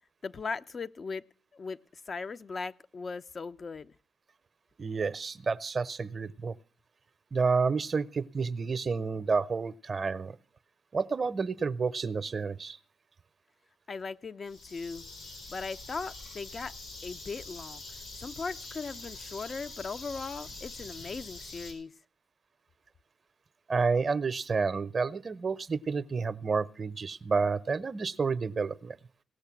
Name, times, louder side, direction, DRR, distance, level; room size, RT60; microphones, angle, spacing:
voice 1, 0.2-1.2 1.5-1.8 2.1-3.9 13.9-15.0 15.5-16.7 17.0-17.8 18.2-21.9, left 4 dB, 50° left, 13 dB, 0.5 m, -38 dB
voice 2, 4.8-6.6 7.3-10.4 10.9-12.8 23.7-29.0, right 4 dB, 50° right, 17 dB, 0.5 m, -30 dB
sound 1, 14.5-21.7, left 2 dB, 80° left, 4.3 m, -45 dB
17.5 x 6.7 x 5.9 m, 0.42 s
supercardioid pair, 50°, 0 cm